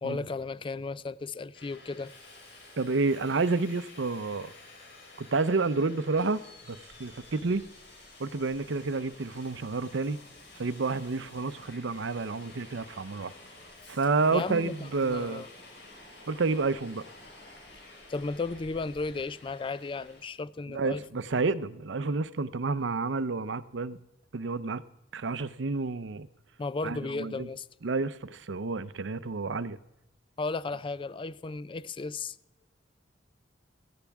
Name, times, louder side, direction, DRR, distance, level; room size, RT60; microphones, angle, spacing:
voice 1, 0.0-2.1 14.3-15.5 18.1-21.0 26.6-27.7 30.4-32.4, left 3 dB, 25° left, 0.4 m, -34 dB
Subway metro underground, 1.5-20.2, left 2 dB, 60° left, 4.2 m, -51 dB
voice 2, 2.8-4.5 5.2-7.6 8.2-10.2 10.6-13.3 13.9-15.4 16.3-17.0 20.7-24.0 24.3-24.8 25.1-26.3 26.8-27.5 27.8-29.8, right 3 dB, 70° right, 0.7 m, -30 dB
17.0 x 14.0 x 3.5 m
head